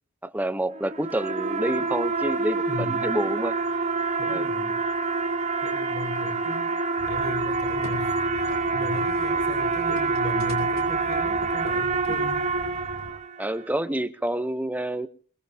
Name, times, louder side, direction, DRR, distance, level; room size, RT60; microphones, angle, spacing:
voice 1, 0.2-3.5 4.3-4.5 13.4-15.1, right 1 dB, 10° right, 11 dB, 0.8 m, -28 dB
sound 1, 0.7-13.5, right 3 dB, 35° right, 1.1 m, -26 dB
voice 2, 2.7-3.1 4.2-4.8 5.6-6.8 7.1-12.5, left 1 dB, 45° left, -2 dB, 4.1 m, -37 dB
sound 2, 7.0-13.1, equal, 85° left, 4.1 m, -42 dB
22.5 x 21.5 x 2.8 m, 0.40 s
head